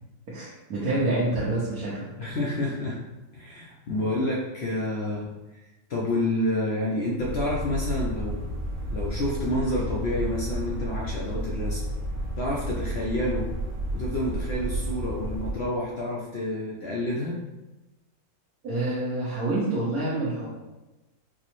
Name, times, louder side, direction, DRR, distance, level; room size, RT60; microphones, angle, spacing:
voice 1, 0.3-2.1 18.6-20.5, right 2 dB, 70° right, -8 dB, 1.3 m, -27 dB
voice 2, 2.2-3.0 3.3-5.3 5.9-8.5 8.9-11.8 12.4-13.5 13.9-17.4, left 1 dB, 65° left, -3 dB, 0.6 m, -29 dB
sound 1, 7.2-15.5, right 1 dB, 90° right, 1.4 m, -31 dB
4.6 x 2.0 x 2.9 m, 1.0 s
omnidirectional pair, 1.6 m